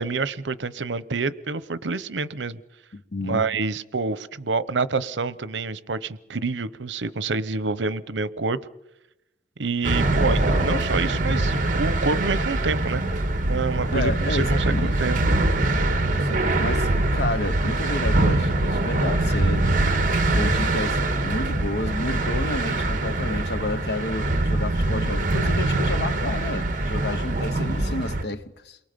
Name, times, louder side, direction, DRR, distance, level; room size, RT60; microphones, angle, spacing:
voice 1, 0.0-2.6 3.2-8.6 9.6-13.0 13.4-15.2, right 4 dB, 90° right, 0.8 m, -27 dB
voice 2, 2.9-3.5 10.3-10.9 13.9-15.0 16.2-19.7 20.3-28.8, left 2 dB, 65° left, 1.0 m, -31 dB
sound 1, 9.8-28.2, right 2 dB, 50° right, 1.5 m, -23 dB
29.0 x 23.0 x 5.2 m
head